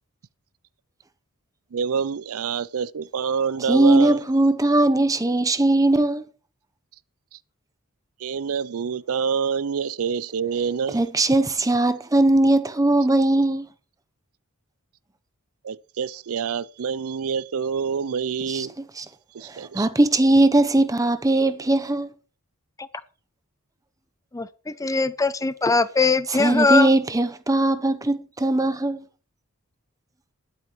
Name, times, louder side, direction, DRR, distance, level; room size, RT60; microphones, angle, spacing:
voice 1, 1.7-4.2 8.2-11.1 15.6-18.7 19.3-19.9, right 6 dB, 75° right, 0.5 m, -27 dB
voice 2, 3.7-6.3 10.9-13.7 18.5-18.7 19.0-19.1 19.5-22.1 26.4-29.0, right 2 dB, 15° right, 0.8 m, -19 dB
voice 3, 24.3-26.9, left 3 dB, 15° left, 0.4 m, -21 dB
20.0 x 8.4 x 3.1 m
head